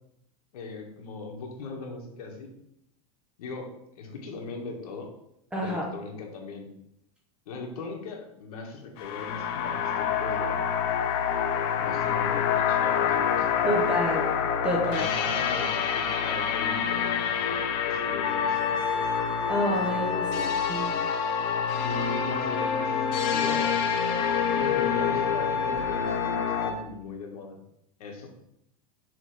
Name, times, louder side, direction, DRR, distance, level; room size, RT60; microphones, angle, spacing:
voice 1, 0.5-2.5 3.4-5.1 5.6-6.7 7.4-10.7 11.8-13.9 14.8-18.8 20.2-20.6 21.7-23.8 24.5-27.6 28.0-28.3, left 3 dB, 75° left, 1 dB, 1.6 m, -39 dB
voice 2, 5.5-5.9 13.6-14.3 14.6-15.1 19.5-20.3 20.7-20.9, equal, 5° right, -3 dB, 0.8 m, -28 dB
sound 1, 9.0-26.7, left 8 dB, 25° left, 0.4 m, -28 dB
Trumpet, 18.2-26.8, left 4 dB, 60° left, 1.3 m, -30 dB
6.5 x 3.5 x 4.9 m, 0.77 s
supercardioid pair, 175°, 20 cm